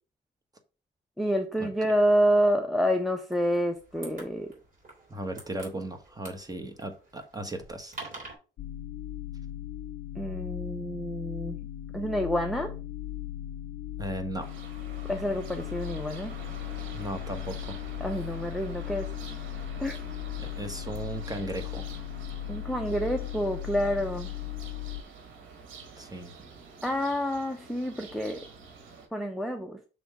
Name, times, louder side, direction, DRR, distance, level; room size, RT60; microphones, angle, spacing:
voice 1, 1.2-4.5 10.2-11.6 11.9-12.7 15.1-16.4 18.0-19.1 19.8-20.0 22.5-24.3 26.8-28.5 29.1-29.8, equal, ahead, 5 dB, 0.7 m, -28 dB
sound 1, 3.3-8.3, right 2 dB, 45° right, 3.3 m, -47 dB
voice 2, 5.1-7.9 14.0-14.5 16.9-17.8 20.4-21.8 26.0-26.5, right 1 dB, 20° right, 5 dB, 1.3 m, -36 dB
sound 2, 8.6-25.0, left 13 dB, 60° left, 0.5 m, -37 dB
sound 3, 14.4-29.1, right 4 dB, 80° right, 1.4 m, -47 dB
6.1 x 3.5 x 4.8 m, 0.34 s
cardioid pair, 90°, 20 cm